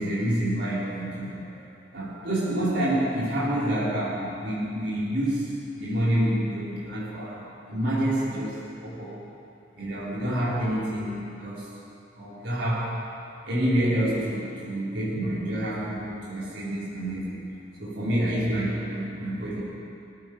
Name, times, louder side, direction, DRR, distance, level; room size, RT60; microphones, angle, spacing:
voice 1, 0.0-1.6 1.9-9.2 9.8-11.7 12.2-12.9 13.4-17.4 17.8-19.6, right 1 dB, 70° right, -9 dB, 4.3 m, -28 dB
18.0 x 15.0 x 4.8 m, 2.8 s
head